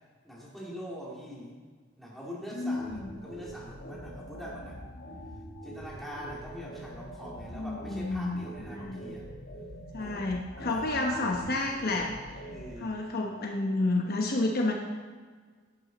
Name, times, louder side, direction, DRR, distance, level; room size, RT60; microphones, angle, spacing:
voice 1, 0.2-1.6 2.0-5.0 5.6-9.2 10.0-10.3 10.6-11.2 12.5-13.0, equal, ahead, -5 dB, 2.5 m, -43 dB
voice 2, 2.5-3.2 7.5-9.0 9.9-12.1 12.8-14.7, left 2 dB, 50° left, 1 dB, 1.0 m, -30 dB
sound 1, 2.7-12.7, right 1 dB, 85° left, 1.6 m, -44 dB
11.0 x 8.9 x 4.1 m, 1.5 s
head